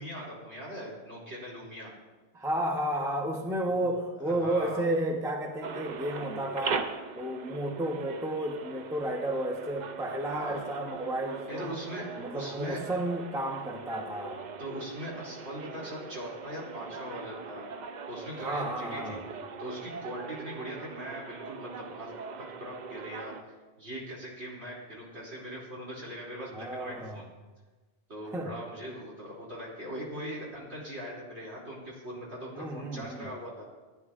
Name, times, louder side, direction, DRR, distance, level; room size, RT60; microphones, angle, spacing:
voice 1, 0.0-1.9 3.7-3.8 4.2-4.8 10.3-10.6 11.5-12.9 14.6-17.7 18.1-19.2 19.6-23.4 23.8-27.2 28.1-33.7, equal, 70° right, -6 dB, 3.0 m, -40 dB
voice 2, 2.3-11.8 12.2-14.4 18.4-19.3 26.5-27.3 28.3-28.6 32.5-33.3, right 1 dB, 5° right, 3 dB, 0.6 m, -32 dB
sound 1, 5.6-23.4, right 5 dB, 55° right, 0.6 m, -41 dB
15.0 x 9.7 x 2.4 m, 1.3 s
omnidirectional pair, 1.2 m